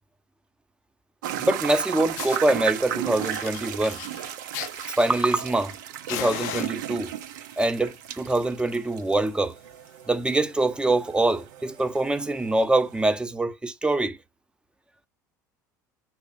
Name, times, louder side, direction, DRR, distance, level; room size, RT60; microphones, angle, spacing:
sound 1, 1.2-13.1, right 11 dB, 75° right, 0.5 m, -35 dB
voice 1, 1.4-4.0 5.0-5.7 6.1-7.1 7.6-9.5 10.1-14.2, right 2 dB, 10° right, 0.6 m, -24 dB
Fire, 1.7-1.8 2.1-2.6 3.1-5.8 6.1-7.3 8.1-8.3 8.6-8.7 9.1-9.2 9.5-9.7 10.3-10.4 11.3-11.4, left 12 dB, 70° left, 0.4 m, -37 dB
5.0 x 2.1 x 4.2 m
hypercardioid pair, 70°, 10 cm